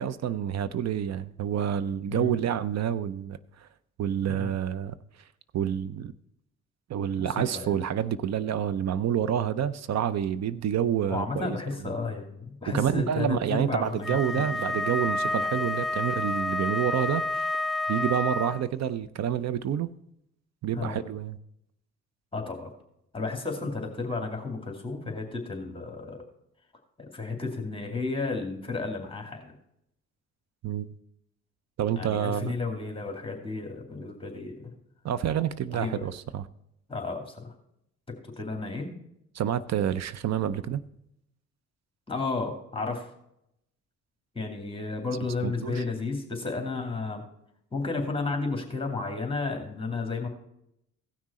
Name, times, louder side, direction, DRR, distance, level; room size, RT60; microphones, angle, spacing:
voice 1, 0.0-3.7 4.0-5.0 5.5-6.1 6.9-11.9 12.7-17.5 17.9-19.9 20.6-21.4 30.6-30.9 31.8-32.5 35.0-36.5 39.3-40.8 45.4-45.8, right 9 dB, 60° right, 16 dB, 0.7 m, -28 dB
voice 2, 7.1-7.7 11.1-14.4 15.3-15.4 20.8-21.0 22.3-22.7 23.1-26.2 27.0-29.6 32.0-34.7 35.7-36.1 36.9-37.5 38.2-38.9 42.1-43.1 44.3-47.2 47.7-50.3, left 3 dB, 15° left, 3 dB, 2.4 m, -33 dB
Wind instrument woodwind instrument, 14.0-18.7, left 2 dB, ahead, 0.5 m, -29 dB
16.5 x 6.2 x 4.2 m, 0.78 s
cardioid pair, 90°, 30 cm